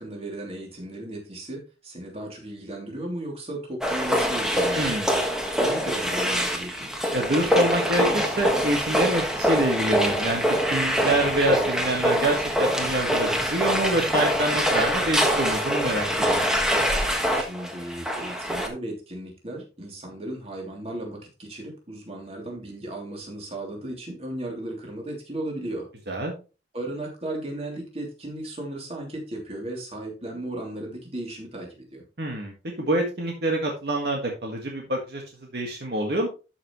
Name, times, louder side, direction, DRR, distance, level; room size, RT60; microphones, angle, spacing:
voice 1, 0.0-5.0 5.6-6.9 17.3-25.9 26.7-32.0, right 1 dB, 35° right, 0 dB, 3.1 m, -35 dB
sound 1, 3.8-18.7, equal, 5° right, 1.4 m, -24 dB
voice 2, 4.7-5.1 7.1-16.5 26.1-26.3 32.2-35.2 35.5-36.3, right 1 dB, 60° right, 1 dB, 1.8 m, -26 dB
12.5 x 6.0 x 3.1 m, 0.31 s
head